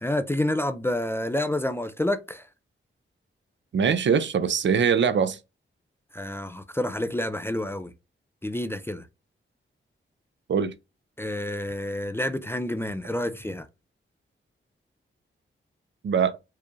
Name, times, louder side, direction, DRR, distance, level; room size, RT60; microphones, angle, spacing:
voice 1, 0.0-2.4 6.1-7.9 8.4-9.0 11.2-13.7, left 1 dB, 10° left, 0.3 m, -28 dB
voice 2, 3.7-5.4 10.5-10.7 16.0-16.4, right 6 dB, 60° right, 0.5 m, -22 dB
4.6 x 2.4 x 3.0 m
wide cardioid pair, 155°, 21 cm